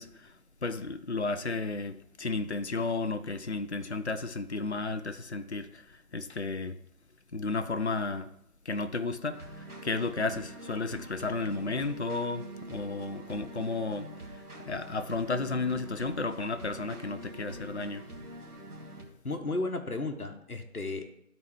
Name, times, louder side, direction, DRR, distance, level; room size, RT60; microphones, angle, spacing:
voice 1, 0.0-6.8 7.3-8.3 8.6-18.1, left 3 dB, 50° left, 0.5 m, -33 dB
sound 1, 9.3-19.0, right 1 dB, 90° right, 2.0 m, -45 dB
voice 2, 19.2-21.1, left 2 dB, 75° left, 1.4 m, -34 dB
12.0 x 4.3 x 4.6 m
figure-of-eight pair, 160°, 44 cm